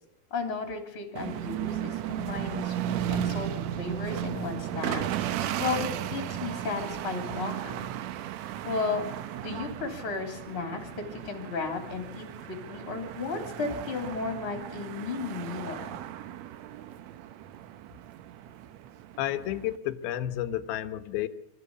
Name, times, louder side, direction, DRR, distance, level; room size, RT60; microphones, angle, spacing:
voice 1, 0.3-5.0 5.6-7.9 8.6-9.1 9.4-15.9, left 4 dB, 35° left, 4 dB, 3.6 m, -34 dB
sound 1, 1.2-19.8, right 11 dB, 80° right, 1.6 m, -35 dB
voice 2, 19.2-21.3, left 12 dB, 85° left, 11 dB, 3.0 m, -31 dB
25.5 x 13.5 x 8.4 m, 0.96 s
omnidirectional pair, 4.2 m